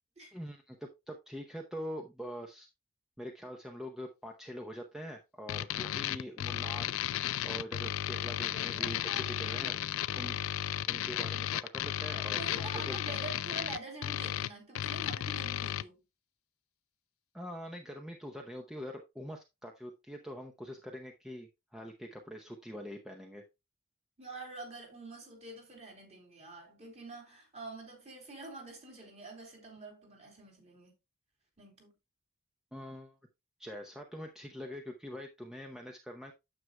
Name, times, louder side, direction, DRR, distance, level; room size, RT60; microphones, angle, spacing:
voice 1, 0.3-2.7 3.2-7.0 7.4-9.8 10.1-11.5 11.7-13.2 17.3-23.4 32.7-33.2 33.6-36.3, equal, 5° right, 0.7 m, -44 dB
sound 1, 5.5-15.8, left 11 dB, 70° left, 0.4 m, -34 dB
voice 2, 8.5-9.4 12.4-16.0 24.2-30.9 31.6-31.9, right 3 dB, 30° right, 3.0 m, -46 dB
9.4 x 7.7 x 2.2 m
head